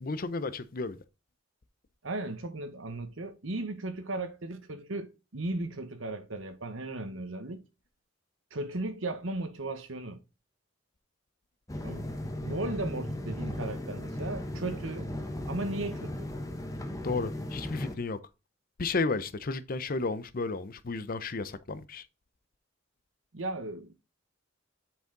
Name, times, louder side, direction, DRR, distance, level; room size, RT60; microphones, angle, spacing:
voice 1, 0.0-1.0 17.0-18.2 18.8-22.1, left 3 dB, 45° left, 0.6 m, -33 dB
voice 2, 2.0-7.6 8.5-10.2 11.8-12.1 12.4-15.1 15.5-16.3 23.3-23.9, right 2 dB, 75° right, 1.2 m, -36 dB
sound 1, 11.7-18.0, left 1 dB, 15° left, 1.1 m, -36 dB
8.1 x 4.8 x 3.8 m
head